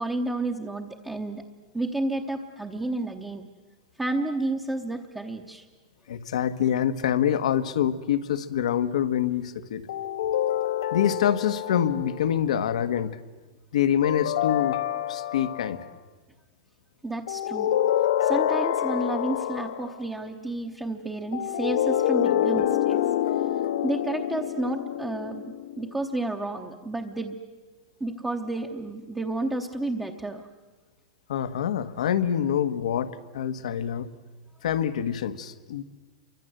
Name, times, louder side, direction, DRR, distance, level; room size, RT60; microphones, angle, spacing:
voice 1, 0.0-1.4 1.7-3.5 4.0-5.6 17.0-17.7 18.2-23.0 23.8-27.4 28.0-30.4, right 2 dB, 5° right, 1 dB, 0.9 m, -31 dB
voice 2, 6.1-9.8 10.9-13.2 13.7-14.8 15.1-15.8 31.3-34.1 34.6-35.8, left 9 dB, 85° left, 11 dB, 1.4 m, -26 dB
sound 1, 9.9-12.4 14.0-15.9 17.3-20.0 21.3-25.8, left 11 dB, 65° left, 1.2 m, -27 dB
29.5 x 24.5 x 7.9 m, 1.3 s
supercardioid pair, 180°, 4 cm